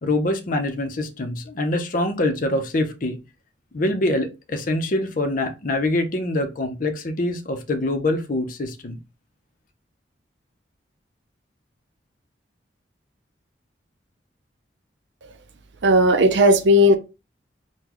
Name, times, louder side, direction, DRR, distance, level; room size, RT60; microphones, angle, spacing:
voice 1, 0.0-3.2 3.7-9.0, left 1 dB, 45° left, 0.6 m, -24 dB
voice 2, 15.8-17.0, equal, 75° right, 0.5 m, -15 dB
3.8 x 2.2 x 3.0 m
head